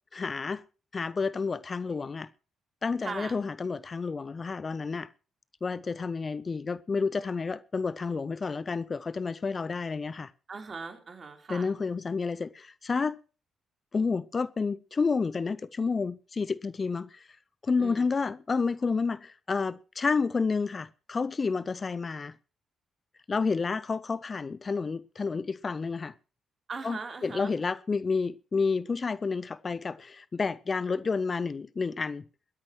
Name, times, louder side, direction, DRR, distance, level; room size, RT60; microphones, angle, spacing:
voice 1, 0.1-0.6 0.9-2.3 2.8-5.1 5.6-10.3 11.5-13.2 13.9-17.3 17.6-22.3 23.3-26.1 26.8-32.2, left 4 dB, 40° left, 0.7 m, -30 dB
voice 2, 3.0-3.4 10.5-11.7 17.8-18.1 26.7-27.5, right 4 dB, 40° right, 3.8 m, -39 dB
20.5 x 13.0 x 3.1 m
figure-of-eight pair, 40°, 0 cm